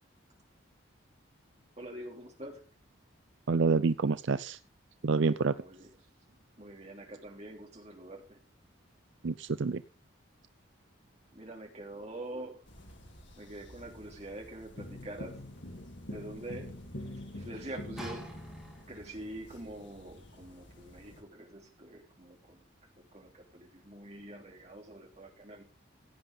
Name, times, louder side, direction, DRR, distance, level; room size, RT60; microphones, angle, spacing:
voice 1, 1.8-2.6 5.6-6.0 6.6-8.4 11.3-12.6 13.4-15.5 16.0-16.7 17.2-18.4 18.9-25.6, right 1 dB, 35° right, 1 dB, 3.3 m, -45 dB
voice 2, 3.5-4.6 5.0-5.5 9.2-9.8, right 4 dB, 70° right, 13 dB, 0.5 m, -27 dB
sound 1, 12.7-21.2, left 1 dB, 65° left, 3.4 m, -47 dB
sound 2, 18.0-19.2 20.0-20.1, right 1 dB, ahead, 3.9 m, -45 dB
16.5 x 9.6 x 3.7 m, 0.33 s
head